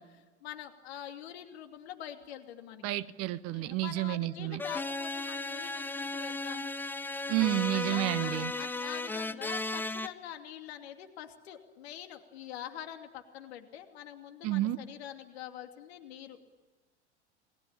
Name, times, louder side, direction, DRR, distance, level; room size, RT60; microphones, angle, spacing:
voice 1, 0.0-3.0 3.5-6.7 7.7-16.4, left 11 dB, 65° left, 6 dB, 2.8 m, -45 dB
voice 2, 2.8-4.6 7.3-8.5 14.4-14.8, right 15 dB, 45° right, 16 dB, 1.2 m, -30 dB
sound 1, 4.6-10.1, left 2 dB, 5° left, 0.8 m, -35 dB
29.0 x 20.5 x 8.8 m, 1.3 s
figure-of-eight pair, 85°, 34 cm